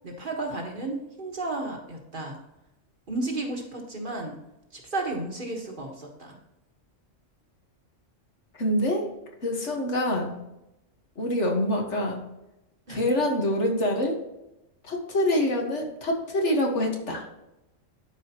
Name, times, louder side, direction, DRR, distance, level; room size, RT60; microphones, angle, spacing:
voice 1, 0.0-2.4 3.1-4.4 4.7-6.4 12.9-13.0, right 2 dB, 45° right, 0 dB, 1.6 m, -33 dB
voice 2, 8.6-9.0 9.4-10.3 11.2-12.2 12.9-14.2 14.9-17.2, left 1 dB, 65° left, 1 dB, 1.7 m, -25 dB
12.0 x 4.9 x 2.9 m, 0.91 s
omnidirectional pair, 1.3 m